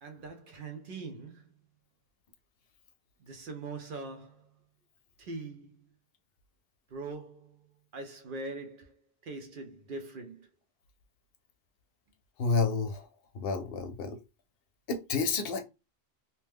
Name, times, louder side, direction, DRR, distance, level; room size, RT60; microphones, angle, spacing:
voice 1, 0.0-1.4 3.2-4.5 5.2-5.7 6.9-7.6 7.9-10.5, right 3 dB, 60° right, 0.7 m, -42 dB
voice 2, 12.4-13.1 13.3-14.2 14.9-15.6, left 4 dB, 65° left, 0.7 m, -30 dB
2.8 x 2.1 x 3.4 m
omnidirectional pair, 1.1 m